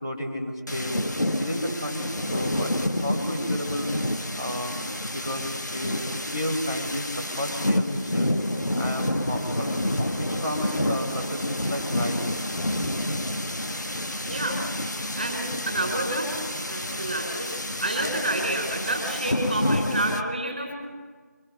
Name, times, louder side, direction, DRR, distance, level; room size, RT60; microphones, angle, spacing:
voice 1, 0.0-1.0 1.4-3.9 4.3-4.8 5.1-8.3 8.8-12.2, left 1 dB, 15° left, -4 dB, 2.3 m, -32 dB
sound 1, 0.7-20.2, left 1 dB, 85° left, 1.7 m, -29 dB
voice 2, 14.2-16.3 16.7-20.8, right 1 dB, 30° right, 2 dB, 5.7 m, -29 dB
25.5 x 23.0 x 5.6 m, 1.5 s
figure-of-eight pair, 175°, 9 cm